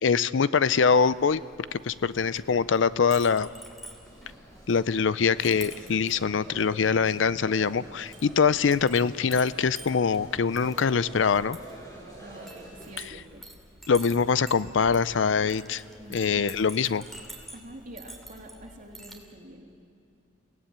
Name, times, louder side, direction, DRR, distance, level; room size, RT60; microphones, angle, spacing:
voice 1, 0.0-1.4 1.7-3.5 4.7-11.6 13.9-15.8 16.1-17.0, left 5 dB, 70° left, 17 dB, 0.5 m, -23 dB
Chink clink, 0.6-19.2, right 1 dB, ahead, 2.7 m, -48 dB
sound 1, 4.0-13.1, right 1 dB, 20° left, 6.3 m, -48 dB
voice 2, 12.2-13.5 16.0-16.6 17.5-19.8, right 1 dB, 45° right, 0 dB, 3.1 m, -47 dB
29.5 x 17.5 x 8.7 m, 2.6 s
head